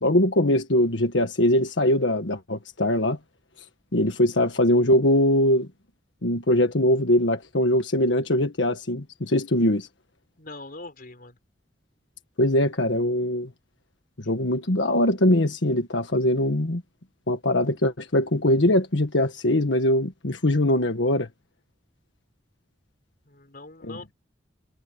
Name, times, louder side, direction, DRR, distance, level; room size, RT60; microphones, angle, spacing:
voice 1, 0.0-3.2 3.9-5.7 6.2-9.9 12.4-13.5 14.2-16.8 17.3-21.3 23.8-24.0, left 1 dB, 90° left, 1.5 m, -22 dB
voice 2, 10.4-11.4 23.3-24.1, left 2 dB, 50° left, 4.4 m, -42 dB
head